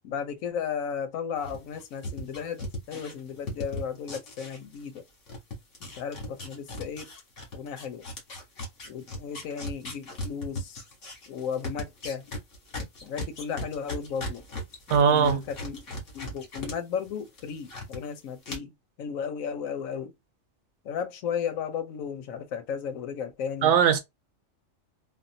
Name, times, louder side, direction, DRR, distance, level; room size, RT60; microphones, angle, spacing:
voice 1, 0.0-5.0 5.8-7.1 7.5-8.1 8.9-10.8 11.3-12.2 13.0-14.4 15.1-15.9 16.1-18.7 19.0-20.1 20.8-23.7, left 7 dB, 80° left, 1.1 m, -34 dB
sound 1, 1.4-5.0 5.3-16.7 17.1-18.0 18.4-18.6, left 1 dB, 65° left, 1.7 m, -37 dB
voice 2, 14.9-15.4 23.6-24.0, right 7 dB, 65° right, 0.9 m, -20 dB
3.4 x 2.2 x 2.6 m
omnidirectional pair, 1.4 m